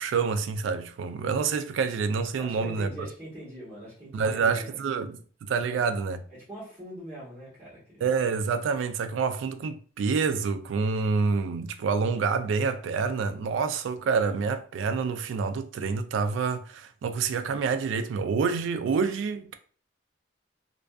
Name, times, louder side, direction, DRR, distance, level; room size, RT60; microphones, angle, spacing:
voice 1, 0.0-2.9 4.1-6.2 8.0-19.6, right 5 dB, 85° right, 0.3 m, -27 dB
voice 2, 2.4-4.8 5.7-5.8 6.5-8.1, equal, 20° right, 1.1 m, -42 dB
2.5 x 2.3 x 2.2 m
head